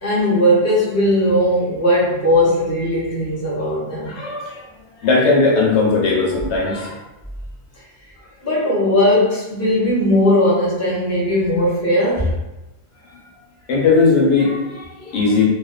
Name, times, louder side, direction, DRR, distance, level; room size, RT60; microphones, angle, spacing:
voice 1, 0.0-4.2 8.4-12.3, equal, 15° left, -7 dB, 0.6 m, -18 dB
voice 2, 4.1-4.6 5.0-7.0 13.7-15.5, left 4 dB, 80° left, -3 dB, 1.0 m, -17 dB
2.5 x 2.2 x 2.2 m, 0.97 s
omnidirectional pair, 1.2 m